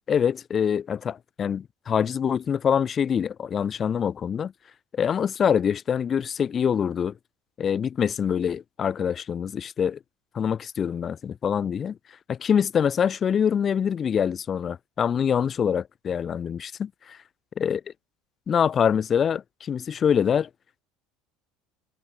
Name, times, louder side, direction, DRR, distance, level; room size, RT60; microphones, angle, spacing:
voice 1, 0.1-4.5 4.9-7.1 7.6-10.0 10.3-12.0 12.3-17.2 17.6-17.8 18.5-20.5, left 8 dB, 30° left, 5.9 m, -25 dB
cardioid pair, 135°, 0 cm